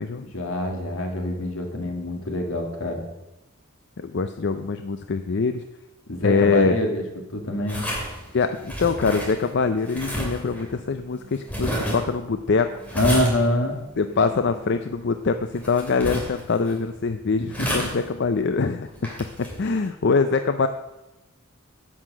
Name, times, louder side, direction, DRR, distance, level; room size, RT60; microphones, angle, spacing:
voice 1, 0.1-3.0 6.1-7.0 7.3-7.8 12.9-13.8 17.6-17.7, left 1 dB, 75° left, 2 dB, 2.1 m, -25 dB
voice 2, 4.0-5.6 6.2-6.8 8.3-12.8 14.0-18.9 19.6-20.7, left 4 dB, 55° left, 9 dB, 0.5 m, -23 dB
sound 1, 7.7-19.9, equal, 5° left, 2.6 m, -33 dB
11.0 x 5.9 x 7.6 m, 0.98 s
head